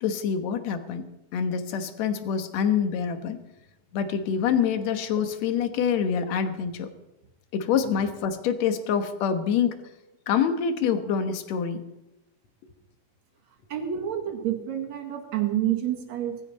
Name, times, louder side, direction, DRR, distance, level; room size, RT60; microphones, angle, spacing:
voice 1, 0.0-1.1 1.3-3.4 3.9-6.9 7.5-9.8 10.3-11.8, left 7 dB, 65° left, 8 dB, 2.3 m, -26 dB
voice 2, 13.7-16.4, right 11 dB, 65° right, 4 dB, 2.9 m, -28 dB
20.0 x 15.0 x 4.2 m, 0.95 s
omnidirectional pair, 3.6 m